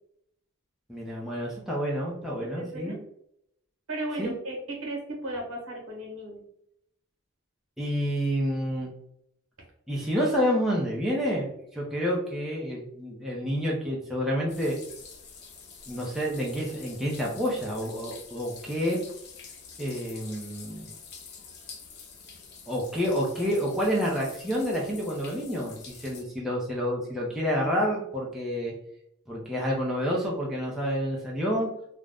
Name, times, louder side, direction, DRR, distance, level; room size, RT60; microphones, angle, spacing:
voice 1, 0.9-3.0 4.2-4.4 7.8-8.9 9.9-14.8 15.9-19.0 19.8-20.9 22.7-28.7 29.3-31.7, equal, ahead, -5 dB, 0.6 m, -29 dB
voice 2, 2.6-3.0 3.9-6.4, right 1 dB, 70° right, 0 dB, 1.0 m, -35 dB
sound 1, 14.5-26.2, left 5 dB, 50° left, 0.5 m, -47 dB
2.5 x 2.1 x 3.4 m, 0.73 s
head